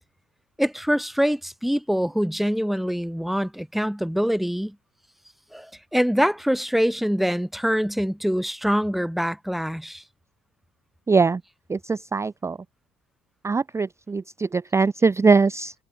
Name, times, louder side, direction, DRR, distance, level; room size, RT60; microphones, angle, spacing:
voice 1, 0.6-4.7 5.5-10.0, equal, ahead, 2.7 m, -24 dB
voice 2, 11.1-11.4 11.7-12.6 13.4-15.7, right 4 dB, 15° right, 0.5 m, -21 dB
cardioid pair, 110°, 17 cm